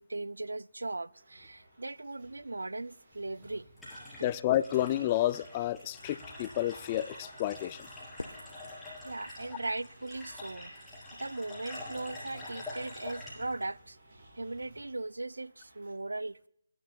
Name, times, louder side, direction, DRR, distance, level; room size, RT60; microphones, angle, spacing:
voice 1, 0.0-3.7 4.1-4.3 9.0-14.0 14.4-16.4, right 2 dB, 90° right, 0.3 m, -38 dB
sound 1, 1.1-15.9, right 2 dB, 45° right, 5.2 m, -62 dB
sound 2, 3.1-14.8, left 1 dB, 5° left, 3.9 m, -46 dB
voice 2, 4.2-7.9, left 13 dB, 25° left, 0.3 m, -30 dB
Fireworks, 8.2-10.5, left 2 dB, 90° left, 0.9 m, -48 dB
21.0 x 11.0 x 2.2 m
figure-of-eight pair, 160°, 0 cm